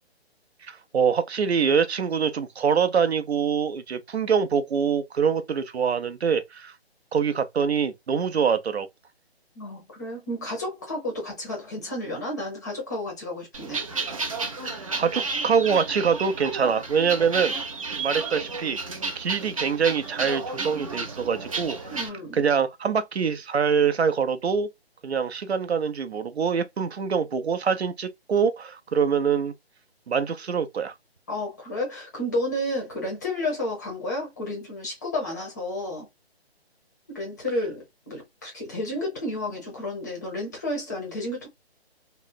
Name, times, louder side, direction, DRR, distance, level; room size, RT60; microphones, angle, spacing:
voice 1, 0.7-6.7 7.1-8.9 14.7-17.5 18.0-18.8 19.2-22.0 22.3-24.7 25.0-29.5 30.1-30.9, right 6 dB, 75° right, 0.6 m, -24 dB
voice 2, 9.5-13.8 21.9-22.4 31.3-36.1 37.1-41.5, left 1 dB, 15° left, 0.6 m, -31 dB
sound 1, 13.5-22.1, right 4 dB, 35° right, 0.5 m, -32 dB
3.0 x 2.0 x 2.2 m
figure-of-eight pair, 150°, 32 cm